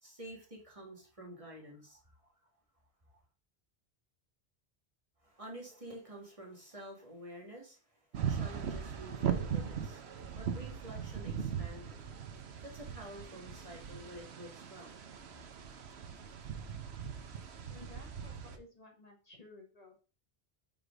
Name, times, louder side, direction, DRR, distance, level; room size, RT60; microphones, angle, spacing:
voice 1, 0.0-2.3 3.1-3.2 5.2-10.0 10.3-12.1 12.6-15.2, right 1 dB, 35° right, -1 dB, 2.0 m, -50 dB
sound 1, 8.1-18.6, right 8 dB, 90° right, 1.1 m, -39 dB
voice 2, 17.7-20.0, left 2 dB, 40° left, 1 dB, 1.5 m, -55 dB
5.6 x 4.9 x 5.0 m, 0.36 s
omnidirectional pair, 1.1 m